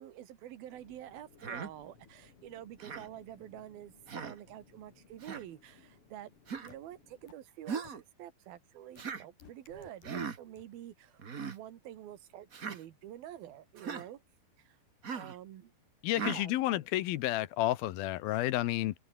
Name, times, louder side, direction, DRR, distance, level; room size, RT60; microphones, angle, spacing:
voice 1, 0.0-6.3 6.6-14.2 14.6-14.8 15.1-15.7 16.2-16.8, right 12 dB, 80° right, 3.5 m, -48 dB
sound 1, 0.7-7.3, left 5 dB, 40° left, 3.9 m, -62 dB
Human voice, 1.4-1.7 2.8-3.1 4.1-4.4 5.2-5.4 6.5-6.7 7.7-8.0 9.0-9.2 10.0-10.4 11.2-11.6 12.5-12.8 13.8-14.1 15.0-15.4 16.1-16.4, right 6 dB, 45° right, 1.0 m, -39 dB
sound 2, 6.7-6.8 7.3-7.4 7.8-7.9 9.0-9.1 9.4-10.1 10.6-10.7, left 8 dB, 65° left, 4.2 m, -55 dB
voice 2, 16.0-18.9, left 15 dB, 90° left, 2.9 m, -31 dB
omnidirectional pair, 4.2 m